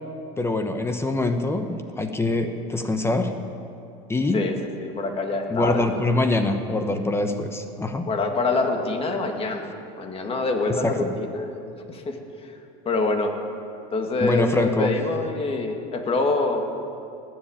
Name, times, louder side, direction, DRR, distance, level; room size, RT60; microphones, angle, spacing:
voice 1, 0.4-3.3 4.1-4.5 5.5-8.1 10.8-11.1 14.2-14.9, left 2 dB, 15° left, 7 dB, 1.0 m, -24 dB
voice 2, 4.8-6.1 8.0-11.6 11.9-12.5 12.9-13.3 13.9-16.6, left 3 dB, 30° left, 4 dB, 2.0 m, -26 dB
20.0 x 7.7 x 8.7 m, 2.6 s
supercardioid pair, 110°, 18 cm